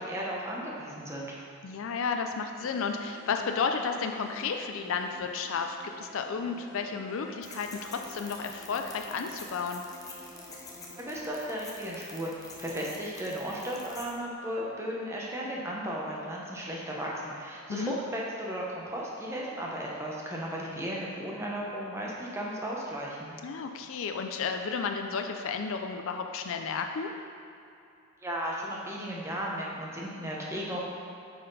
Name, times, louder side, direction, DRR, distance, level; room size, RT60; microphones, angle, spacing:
voice 1, 0.0-1.3 11.0-23.4 28.2-30.8, equal, 10° right, -4 dB, 1.0 m, -35 dB
voice 2, 1.6-9.8 17.7-17.9 23.4-27.1, left 5 dB, 60° left, 5 dB, 0.4 m, -32 dB
sound 1, 2.6-11.3, left 1 dB, 55° right, 1.6 m, -50 dB
sound 2, 7.4-14.1, left 3 dB, 15° left, 0.6 m, -47 dB
9.1 x 4.2 x 4.0 m, 2.7 s
head